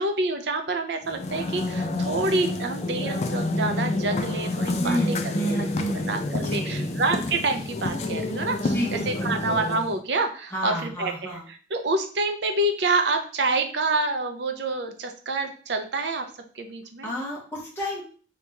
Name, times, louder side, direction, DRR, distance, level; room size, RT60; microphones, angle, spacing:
voice 1, 0.0-5.0 5.2-5.7 6.1-16.3 16.6-17.1, right 2 dB, 70° right, 6 dB, 0.6 m, -27 dB
sound 1, 1.0-10.0, left 2 dB, 35° left, 0.3 m, -28 dB
voice 2, 4.8-7.0 8.7-9.4 10.5-11.4 17.0-18.0, right 1 dB, 15° left, -5 dB, 0.9 m, -30 dB
2.9 x 2.8 x 3.4 m, 0.41 s
head